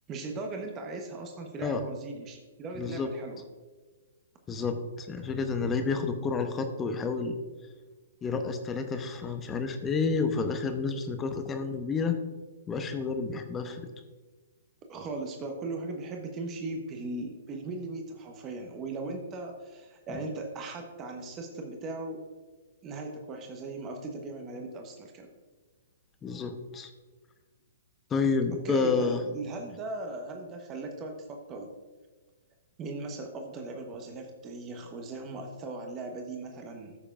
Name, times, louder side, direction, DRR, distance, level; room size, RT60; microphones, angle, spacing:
voice 1, 0.1-3.4 14.9-22.2 22.8-25.3 28.5-31.7 32.8-37.0, right 2 dB, 25° right, 3 dB, 1.1 m, -38 dB
voice 2, 2.7-3.1 4.5-7.4 8.2-12.2 12.7-13.8 26.2-26.9 28.1-29.2, left 4 dB, 20° left, 7 dB, 0.8 m, -30 dB
14.0 x 6.7 x 2.5 m, 1.3 s
figure-of-eight pair, 120°, 0 cm